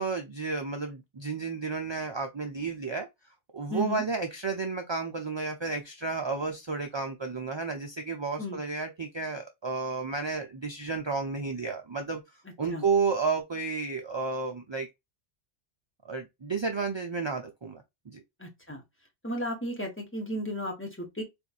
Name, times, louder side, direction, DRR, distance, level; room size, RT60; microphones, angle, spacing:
voice 1, 0.0-3.1 3.5-12.2 12.6-14.9 16.0-18.2, right 4 dB, 40° right, 0.4 m, -32 dB
voice 2, 3.7-4.0 8.4-8.6 12.7-12.8 18.4-18.8 19.2-21.2, equal, 10° left, 1.2 m, -34 dB
4.2 x 2.6 x 2.4 m
omnidirectional pair, 1.2 m